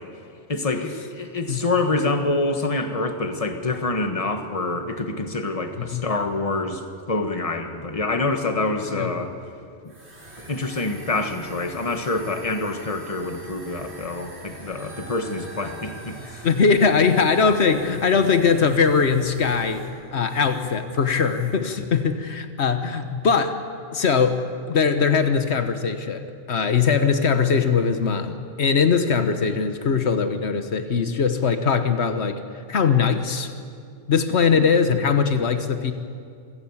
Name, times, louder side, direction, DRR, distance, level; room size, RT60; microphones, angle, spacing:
voice 1, 0.5-6.8 7.1-9.3 10.4-16.5, left 2 dB, 30° left, 6 dB, 1.6 m, -26 dB
sound 1, 9.9-20.9 21.1-21.7, right 1 dB, 75° right, 3.9 m, -43 dB
voice 2, 16.4-19.8 20.1-23.6 23.9-24.4 24.7-32.4 32.7-33.5 34.1-35.9, left 5 dB, 80° left, 8 dB, 1.4 m, -21 dB
26.5 x 17.5 x 7.3 m, 2.3 s
omnidirectional pair, 1.1 m